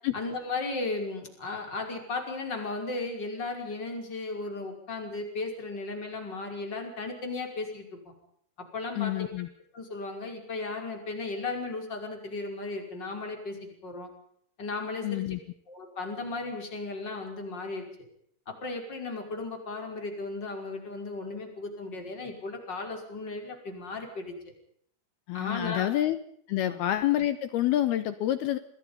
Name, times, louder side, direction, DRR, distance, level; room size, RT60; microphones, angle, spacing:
voice 1, 0.1-8.1 8.7-9.3 9.7-13.6 13.8-14.1 14.6-15.3 15.7-17.8 18.5-24.5 25.3-25.9 26.5-26.8, left 3 dB, 20° left, 3 dB, 5.9 m, -35 dB
voice 2, 9.0-9.5 15.0-15.4 25.3-26.2 26.5-28.6, left 13 dB, 75° left, 13 dB, 2.4 m, -27 dB
28.0 x 20.5 x 5.6 m, 0.67 s
omnidirectional pair, 5.7 m